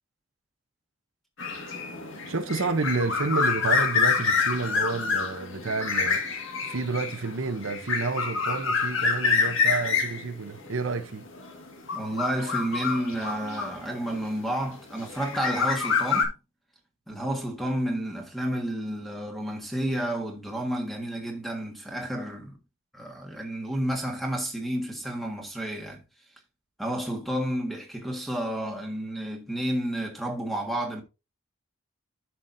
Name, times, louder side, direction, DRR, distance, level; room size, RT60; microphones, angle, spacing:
sound 1, 1.4-14.3 15.0-16.2, left 5 dB, 70° left, 1.8 m, -27 dB
voice 1, 2.3-6.2 6.6-11.3, right 3 dB, 70° right, 0.8 m, -30 dB
voice 2, 11.9-16.3 17.1-22.6 22.9-26.0 26.8-31.0, right 1 dB, ahead, 1.5 m, -31 dB
11.5 x 5.8 x 2.6 m
head